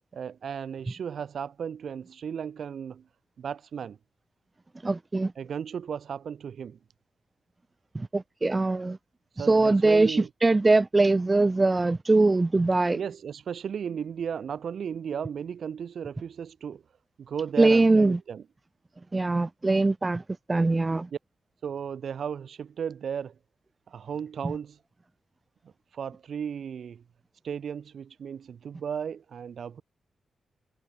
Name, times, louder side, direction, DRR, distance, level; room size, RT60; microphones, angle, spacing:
voice 1, 0.1-3.1 3.4-4.0 5.4-6.8 9.4-10.3 12.1-12.3 12.9-16.8 17.2-18.4 21.6-23.4 23.9-24.8 25.9-27.0 27.4-29.8, right 7 dB, 55° right, 5.4 m, -35 dB
voice 2, 4.8-5.3 7.9-9.0 9.4-13.0 17.6-18.2 19.1-20.2 20.5-21.1 24.4-24.5, right 2 dB, 20° right, 0.8 m, -22 dB
wide cardioid pair, 160°, 0 cm